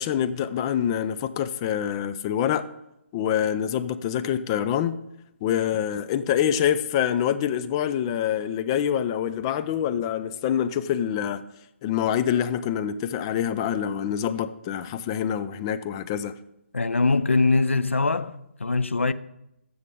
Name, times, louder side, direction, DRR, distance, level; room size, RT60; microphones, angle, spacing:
voice 1, 0.0-2.7 3.1-5.0 5.4-11.4 11.8-16.3, left 9 dB, 25° left, 0.4 m, -26 dB
voice 2, 16.7-19.1, left 3 dB, 80° left, 0.5 m, -22 dB
14.0 x 6.3 x 3.7 m
figure-of-eight pair, 140°, 7 cm